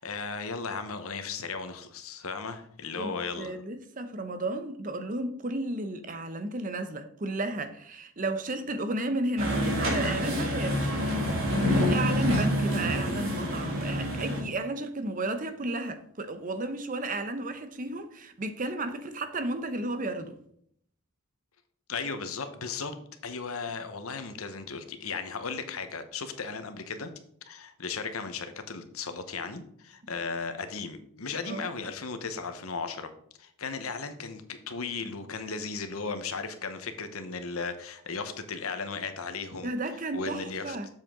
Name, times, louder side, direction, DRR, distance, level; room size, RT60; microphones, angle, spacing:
voice 1, 0.0-3.6 21.9-22.9 23.2-27.1 27.5-33.1 33.4-39.7 40.1-40.8, left 4 dB, 90° left, 1.1 m, -36 dB
voice 2, 3.0-11.2 11.6-20.4 31.5-31.6 39.6-40.9, right 2 dB, 40° right, 0.8 m, -33 dB
sound 1, 9.4-14.4, equal, 65° right, 2.6 m, -27 dB
7.5 x 7.4 x 3.7 m
head